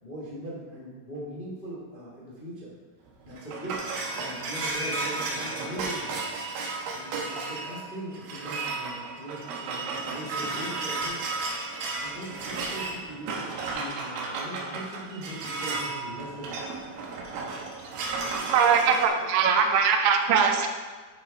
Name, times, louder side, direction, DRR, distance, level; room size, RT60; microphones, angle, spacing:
voice 1, 0.0-2.7 3.2-3.8 4.1-6.2 6.9-11.3 12.0-16.7, right 1 dB, 70° left, -7 dB, 0.5 m, -40 dB
sound 1, 3.1-19.0, right 3 dB, 65° right, 2.6 m, -33 dB
voice 2, 18.5-20.7, right 6 dB, 85° right, 4 dB, 3.1 m, -21 dB
11.0 x 5.5 x 4.7 m, 1.4 s
omnidirectional pair, 5.3 m